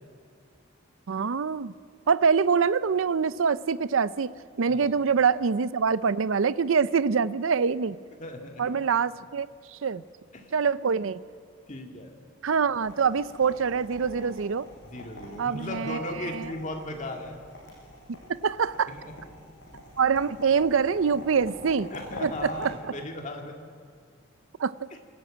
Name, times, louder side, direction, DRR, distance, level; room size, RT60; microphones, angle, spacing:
voice 1, 1.1-1.7 2.1-4.3 4.6-8.0 8.6-10.0 10.5-11.2 12.4-14.7 15.4-16.5 18.3-18.9 20.0-21.9 22.2-22.9 24.6-24.9, right 6 dB, 70° right, 17 dB, 0.5 m, -25 dB
voice 2, 8.2-8.6 10.3-10.5 11.7-12.1 14.9-17.4 18.9-19.1 21.9-23.6, left 1 dB, 35° left, 3 dB, 2.1 m, -37 dB
sound 1, 12.7-22.7, left 1 dB, 55° left, 6.7 m, -45 dB
26.5 x 13.0 x 8.7 m, 2.1 s
head